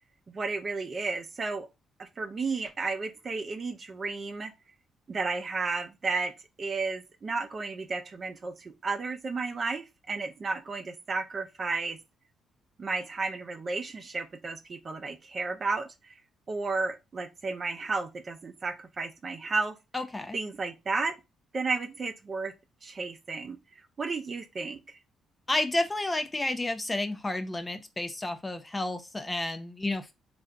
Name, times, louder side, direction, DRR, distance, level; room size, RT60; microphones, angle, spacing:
voice 1, 0.3-1.7 2.0-4.5 5.1-6.3 6.6-12.0 12.8-16.1 16.5-19.8 20.3-21.2 21.5-22.5 22.8-23.6 24.0-25.0, right 4 dB, 40° right, 0.6 m, -33 dB
voice 2, 19.9-20.4 25.5-30.1, left 2 dB, 15° left, 0.5 m, -31 dB
3.3 x 2.5 x 3.6 m
cardioid pair, 90°, 0 cm